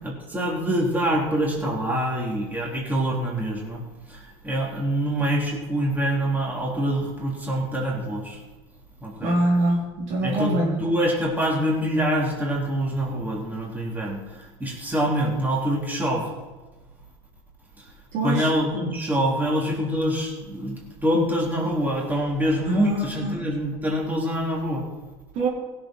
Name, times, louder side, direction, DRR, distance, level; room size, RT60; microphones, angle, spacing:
voice 1, 0.0-3.8 4.4-8.4 9.0-9.4 10.2-14.2 14.6-16.2 18.2-24.8, equal, 15° right, -2 dB, 3.3 m, -25 dB
voice 2, 9.2-10.7 18.1-18.5 22.7-23.3 25.4-25.5, right 1 dB, 60° right, -2 dB, 3.0 m, -24 dB
16.5 x 7.0 x 4.4 m, 1.2 s
hypercardioid pair, 80°, 13 cm